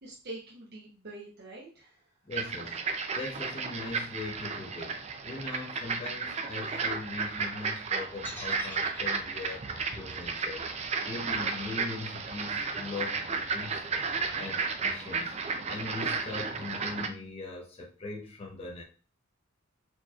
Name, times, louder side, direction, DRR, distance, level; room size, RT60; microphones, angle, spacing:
voice 1, 0.0-2.0, right 2 dB, 50° right, -4 dB, 0.8 m, -45 dB
voice 2, 2.3-2.8 3.1-5.0 5.3-9.6 9.9-13.8 14.3-15.3 15.7-18.8, left 3 dB, 30° left, -2 dB, 0.7 m, -40 dB
sound 1, 2.3-17.1, right 5 dB, 30° right, 0.4 m, -33 dB
sound 2, 8.2-12.3, left 2 dB, 10° left, 1.1 m, -47 dB
4.3 x 2.9 x 2.3 m, 0.38 s
head